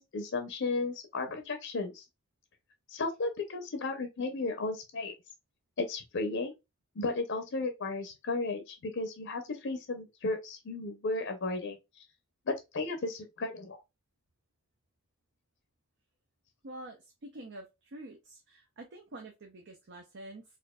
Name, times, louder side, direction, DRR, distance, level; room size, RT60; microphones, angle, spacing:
voice 1, 0.0-2.0 2.9-5.1 5.8-6.6 7.0-11.8 12.5-13.8, left 3 dB, 65° left, 0.6 m, -34 dB
voice 2, 16.6-20.4, right 1 dB, 60° right, 0.6 m, -47 dB
4.3 x 2.5 x 2.2 m
head